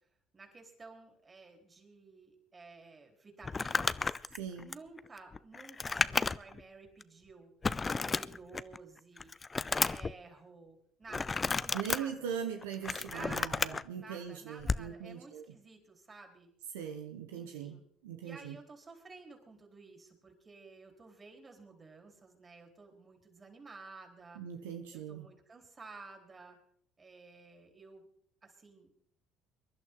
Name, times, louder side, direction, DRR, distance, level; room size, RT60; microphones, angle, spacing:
voice 1, 0.3-4.2 4.6-7.5 7.9-9.3 9.6-12.3 13.0-16.5 17.3-17.8 18.2-24.4 24.9-26.6 27.0-28.1 28.4-28.9, right 3 dB, 30° right, 3 dB, 4.3 m, -53 dB
Crumpling crinkling, 3.4-6.6 7.0-7.1 7.6-8.8 9.2-10.1 11.1-12.0 12.6-13.8 14.6-14.9, left 4 dB, 25° left, 0.6 m, -32 dB
voice 2, 4.3-4.7 11.7-15.5 16.7-18.6 24.3-25.3, right 8 dB, 85° right, 4 dB, 1.2 m, -40 dB
23.0 x 11.5 x 3.9 m, 0.67 s
hypercardioid pair, 65°, 0 cm